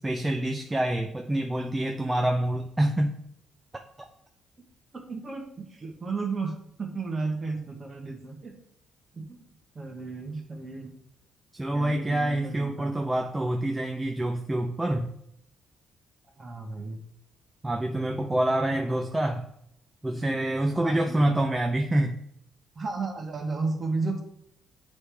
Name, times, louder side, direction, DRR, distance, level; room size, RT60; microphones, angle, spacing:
voice 1, 0.0-3.2 11.5-15.1 17.6-19.5 20.0-22.2, right 1 dB, 10° right, 3 dB, 0.5 m, -26 dB
voice 2, 4.9-8.6 9.1-9.4 9.7-10.9 11.7-13.1 16.4-17.0 18.6-19.0 20.7-21.4 22.7-24.2, right 3 dB, 25° right, 2 dB, 1.2 m, -34 dB
9.4 x 3.2 x 3.4 m, 0.73 s
cardioid pair, 135°, 0 cm